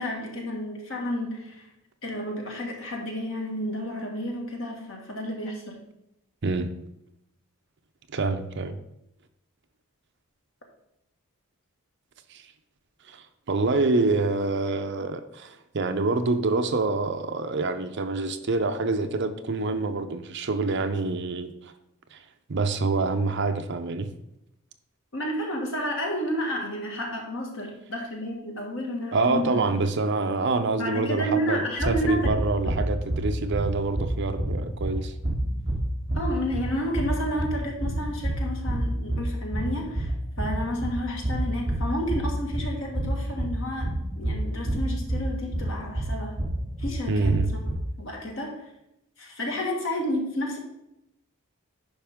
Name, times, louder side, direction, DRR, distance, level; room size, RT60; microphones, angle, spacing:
voice 1, 0.0-1.7 2.0-5.8 25.1-29.8 30.8-32.7 36.1-40.1 40.4-46.4 46.8-47.4 48.0-48.6 49.2-50.6, equal, 60° left, 0 dB, 1.8 m, -31 dB
voice 2, 6.4-6.7 8.1-8.8 12.3-12.4 13.1-21.7 22.1-22.2 22.5-24.1 29.1-35.1 47.1-47.5, right 3 dB, 55° right, 8 dB, 0.6 m, -26 dB
sound 1, 31.8-47.7, right 1 dB, 20° right, 1.8 m, -29 dB
10.5 x 5.2 x 3.6 m, 0.85 s
head